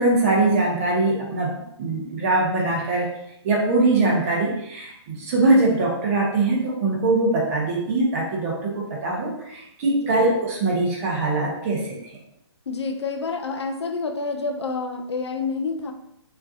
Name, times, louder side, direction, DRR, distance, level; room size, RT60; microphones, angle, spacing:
voice 1, 0.0-3.2 3.4-12.0, right 2 dB, 30° right, -2 dB, 1.1 m, -22 dB
voice 2, 9.9-10.2 12.7-15.9, left 4 dB, 65° left, 6 dB, 0.6 m, -28 dB
5.4 x 2.9 x 2.7 m, 0.78 s
hypercardioid pair, 150°, 15 cm